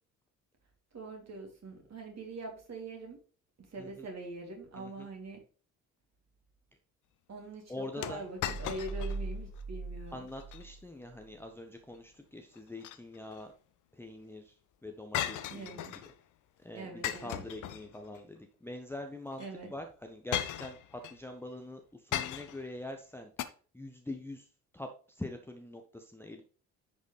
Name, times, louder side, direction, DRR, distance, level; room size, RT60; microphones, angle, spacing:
voice 1, 0.9-3.2 3.6-5.4 7.3-10.3 15.5-16.0 16.7-17.4 19.4-19.7, right 2 dB, 40° right, 2 dB, 3.0 m, -43 dB
voice 2, 4.7-5.1 7.7-8.2 10.1-13.5 13.9-15.8 16.6-19.4 19.7-23.3 23.7-24.5 24.7-26.4, left 1 dB, 5° left, 4 dB, 1.0 m, -44 dB
sound 1, 8.0-9.2 9.6-9.7 10.3-10.6 12.5-13.4 15.1-16.1 17.0-18.2 19.3-19.5 20.3-21.2 22.1-22.7 23.4-23.5, left 11 dB, 45° left, 0.8 m, -37 dB
sound 2, 8.4-11.4, right 3 dB, 75° left, 1.8 m, -40 dB
10.5 x 5.3 x 3.3 m, 0.40 s
figure-of-eight pair, 50°, 42 cm